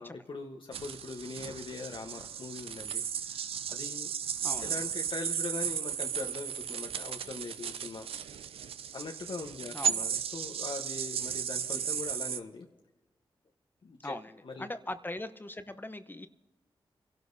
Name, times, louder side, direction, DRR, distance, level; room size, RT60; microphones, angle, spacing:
voice 1, 0.0-4.1 4.6-8.1 8.9-12.7 13.8-14.2 14.4-14.7, left 3 dB, 65° left, 2 dB, 1.1 m, -41 dB
sound 1, 0.7-12.4, right 8 dB, 85° right, 0.4 m, -35 dB
voice 2, 4.4-4.7 9.7-10.1 14.0-16.3, left 1 dB, 20° left, 10 dB, 0.7 m, -40 dB
25.5 x 12.0 x 2.7 m, 1.1 s
cardioid pair, 45°, 9 cm